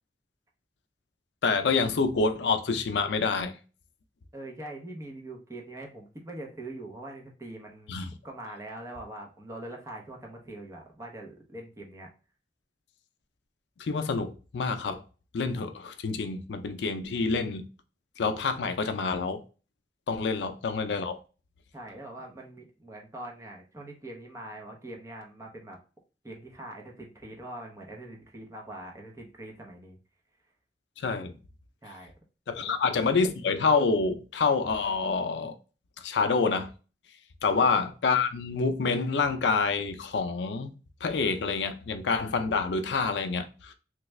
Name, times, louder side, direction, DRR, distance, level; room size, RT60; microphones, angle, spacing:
voice 1, 1.4-3.6 7.9-8.1 13.8-15.0 15.3-17.7 18.2-19.4 20.1-21.2 31.0-31.3 32.5-35.5 36.0-36.7 37.4-40.7 41.0-43.7, left 4 dB, 80° left, 0.4 m, -27 dB
voice 2, 4.3-8.0 8.2-12.1 21.7-25.8 26.2-30.0 31.8-32.1 32.6-32.8 37.4-37.6, right 1 dB, 15° right, 0.7 m, -43 dB
3.3 x 2.4 x 3.0 m
head